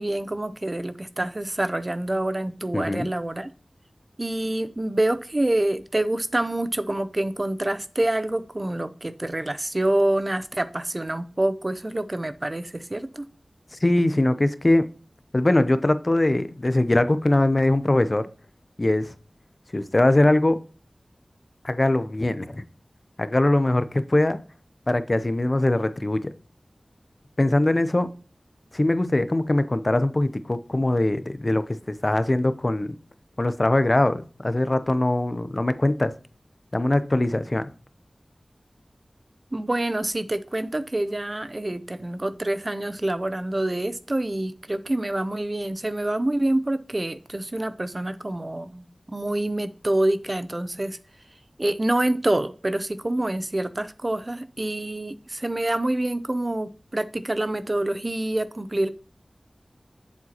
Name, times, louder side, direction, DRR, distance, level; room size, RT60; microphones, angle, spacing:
voice 1, 0.0-3.5 4.2-13.3 39.5-51.0 51.6-58.9, right 1 dB, 40° right, 0.6 m, -26 dB
voice 2, 2.7-3.1 13.8-14.9 15.3-18.2 18.8-19.1 19.7-20.6 21.6-22.6 23.2-24.4 24.9-26.3 27.4-28.1 28.7-33.0 33.4-36.1 36.7-37.6, left 1 dB, 40° left, 0.7 m, -22 dB
7.9 x 7.4 x 3.0 m
wide cardioid pair, 50°, 0 cm